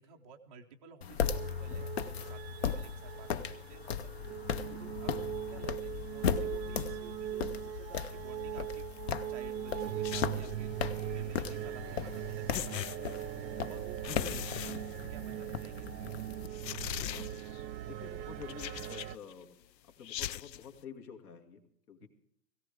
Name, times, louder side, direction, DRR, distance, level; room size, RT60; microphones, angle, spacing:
voice 1, 0.0-4.1 4.8-8.9 9.3-13.2 13.7-14.8 15.1-16.2 22.0-22.1, right 7 dB, 25° right, -2 dB, 0.5 m, -54 dB
sound 1, 1.0-16.5, left 7 dB, 40° left, 0.7 m, -37 dB
sound 2, 1.2-19.2, right 12 dB, 85° right, 0.8 m, -40 dB
sound 3, 10.0-10.7 12.0-12.1 12.5-13.5 14.0-15.5 15.9-16.0 16.5-17.6 18.4-19.3 20.0-20.7, left 12 dB, 80° left, 0.7 m, -40 dB
voice 2, 17.9-19.5 19.8-21.6 21.9-22.1, left 7 dB, 60° left, 5 dB, 2.7 m, -49 dB
17.5 x 17.0 x 3.5 m, 0.71 s
hypercardioid pair, 155°, 50 cm